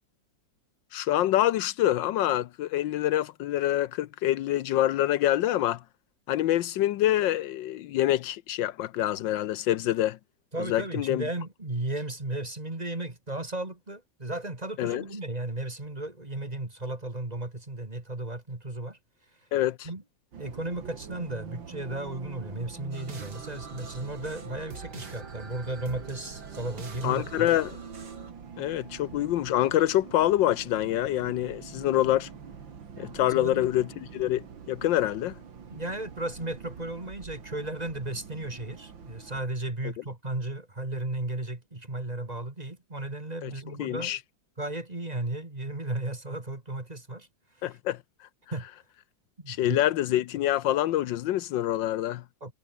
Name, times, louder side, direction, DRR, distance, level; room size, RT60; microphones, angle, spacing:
voice 1, 0.9-5.8 6.3-10.2 10.7-11.2 14.8-15.0 19.5-19.9 27.0-27.8 28.6-32.3 33.0-35.4 43.4-43.5 43.8-44.2 47.6-48.0 49.5-52.2, left 13 dB, 80° left, 1.4 m, -26 dB
voice 2, 10.5-19.0 19.8-20.0 20.4-27.5 33.3-33.7 35.7-44.2 44.6-47.3 48.5-48.7 49.4-49.8 52.4-52.5, right 2 dB, 20° right, 2.7 m, -35 dB
Bus, 20.3-39.4, right 6 dB, 90° right, 2.8 m, -45 dB
sound 1, 22.9-28.3, right 4 dB, 60° right, 3.7 m, -45 dB
omnidirectional pair, 2.0 m